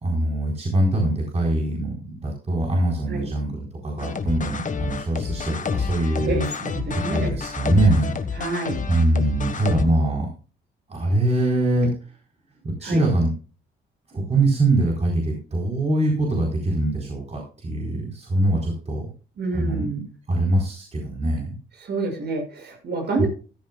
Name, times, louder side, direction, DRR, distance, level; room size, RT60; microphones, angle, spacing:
voice 1, 0.0-6.5 6.9-8.1 8.9-10.3 10.9-11.9 12.6-13.3 14.1-19.1 19.5-19.9 20.3-21.5 23.2-23.3, right 1 dB, 35° right, -1 dB, 4.2 m, -23 dB
sound 1, 4.0-9.8, left 5 dB, 40° left, 1.5 m, -29 dB
voice 2, 6.1-7.3 8.4-8.8 12.8-13.0 19.4-20.1 21.8-23.3, right 3 dB, 60° right, 3 dB, 6.6 m, -28 dB
15.0 x 12.5 x 2.3 m, 0.37 s
cardioid pair, 90°, 20 cm